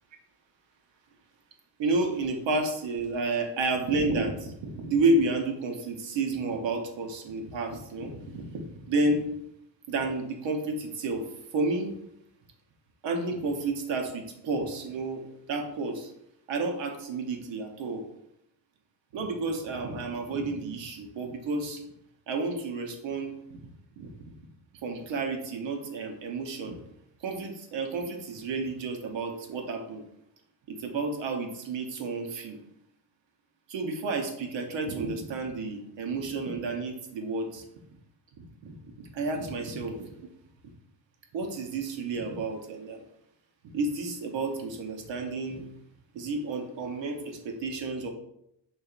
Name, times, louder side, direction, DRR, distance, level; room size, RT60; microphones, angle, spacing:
voice 1, 1.8-9.3 9.9-11.9 13.0-16.1 16.5-18.0 19.1-21.8 22.3-23.7 24.0-24.4 24.8-26.8 27.2-30.0 30.7-32.6 33.7-37.7 38.4-40.1 41.3-43.0 43.7-45.6 46.1-48.1, right 3 dB, 90° right, 4 dB, 0.8 m, -31 dB
6.5 x 2.5 x 2.4 m, 0.79 s
cardioid pair, 100°, 43 cm